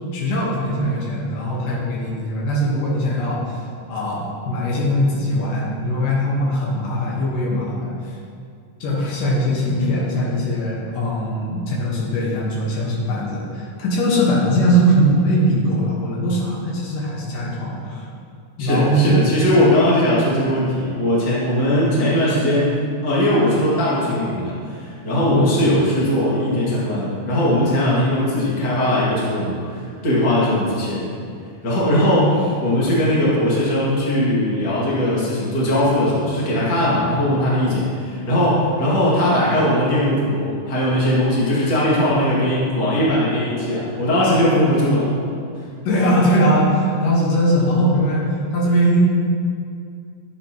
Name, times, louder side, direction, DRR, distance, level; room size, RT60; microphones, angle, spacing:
voice 1, 0.1-3.6 3.9-8.2 8.8-18.0 18.6-19.2 25.3-25.6 45.8-49.0, equal, 80° left, -4 dB, 3.0 m, -20 dB
voice 2, 18.6-22.8 23.0-31.1 31.6-45.1, left 1 dB, 35° left, -7 dB, 2.4 m, -19 dB
11.0 x 8.3 x 3.0 m, 2.3 s
omnidirectional pair, 3.8 m